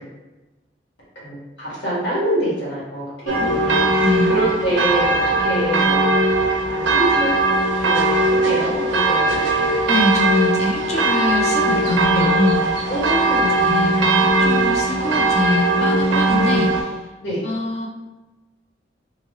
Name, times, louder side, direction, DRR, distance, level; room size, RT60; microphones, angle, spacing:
voice 1, 1.1-3.0 3.4-6.4 6.8-7.3 7.8-9.4 12.1-12.3 12.8-13.7 17.2-17.4, equal, 65° left, -7 dB, 1.4 m, -25 dB
sound 1, 3.3-16.8, right 2 dB, 75° right, 0.4 m, -19 dB
voice 2, 3.4-4.4 9.9-12.9 13.4-17.0 17.4-17.9, left 1 dB, 35° left, 0 dB, 0.3 m, -24 dB
2.9 x 2.5 x 2.8 m, 1.1 s
head